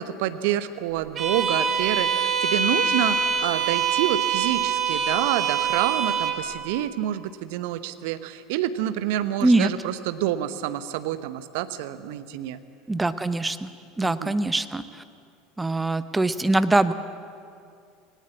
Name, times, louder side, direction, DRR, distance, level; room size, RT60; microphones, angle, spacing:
voice 1, 0.0-12.6 14.0-14.3, right 12 dB, 60° right, 12 dB, 0.9 m, -28 dB
Bowed string instrument, 1.2-6.4, right 6 dB, 35° right, 2.7 m, -24 dB
voice 2, 12.9-13.7 14.0-15.0 15.6-16.9, right 2 dB, 10° right, 12 dB, 0.9 m, -23 dB
19.0 x 18.5 x 8.4 m, 2.3 s
figure-of-eight pair, 75°, 0 cm